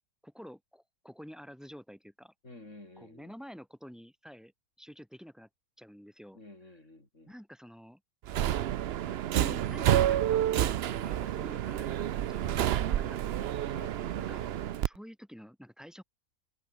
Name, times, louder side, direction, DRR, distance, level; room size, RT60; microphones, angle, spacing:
voice 1, 0.2-2.3 3.0-4.5 4.8-5.5 5.8-6.4 7.3-8.0 9.0-13.6 14.2-14.5 14.8-16.0, equal, ahead, 5.8 m, -49 dB
voice 2, 2.4-3.3 6.3-7.3 13.7-14.0, left 2 dB, 55° left, 6.2 m, -51 dB
Subway metro underground, 8.3-14.9, right 11 dB, 60° right, 0.7 m, -29 dB
omnidirectional pair, 1.6 m